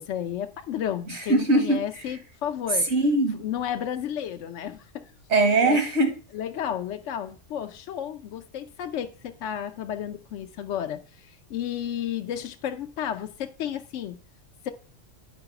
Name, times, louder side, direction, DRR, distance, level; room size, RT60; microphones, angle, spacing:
voice 1, 0.0-2.9 3.3-5.1 5.6-5.8 6.3-14.2 14.6-14.7, left 10 dB, 75° left, 0.9 m, -32 dB
voice 2, 1.1-2.0 2.9-3.4 5.3-6.1, right 2 dB, 65° right, 1.6 m, -21 dB
9.4 x 4.7 x 5.8 m
omnidirectional pair, 1.3 m